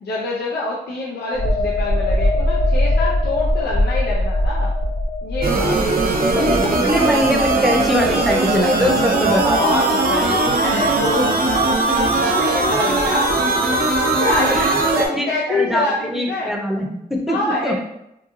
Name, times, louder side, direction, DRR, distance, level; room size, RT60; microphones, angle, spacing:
voice 1, 0.0-4.7 5.2-5.8 6.3-6.7 9.2-13.3 14.0-16.5 17.3-17.7, left 2 dB, 90° left, -3 dB, 0.4 m, -25 dB
sound 1, 1.3-8.8 9.1-9.3, left 1 dB, 45° left, 0.8 m, -21 dB
sound 2, 5.4-15.1, right 2 dB, 60° right, 0.6 m, -19 dB
voice 2, 6.3-9.7 10.3-10.4 14.5-14.7 15.1-17.7, equal, ahead, 1 dB, 0.6 m, -22 dB
2.9 x 2.3 x 2.6 m, 0.82 s
cardioid pair, 45°, 17 cm